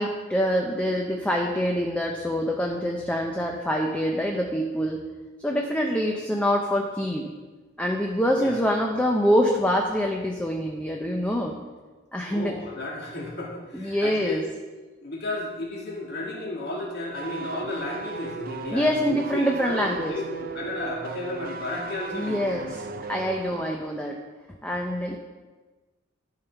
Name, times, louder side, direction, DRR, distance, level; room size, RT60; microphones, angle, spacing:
voice 1, 0.0-5.0 5.4-7.3 7.8-11.5 12.1-12.5 13.7-14.4 18.7-20.1 22.1-22.8 23.1-24.2 24.6-25.2, equal, 5° left, 1 dB, 0.7 m, -25 dB
voice 2, 12.3-14.3 15.0-22.6, left 2 dB, 55° left, -3 dB, 2.3 m, -33 dB
sound 1, 17.1-23.8 24.1-24.2, right 5 dB, 45° right, 0.4 m, -37 dB
12.0 x 5.5 x 4.6 m, 1.3 s
head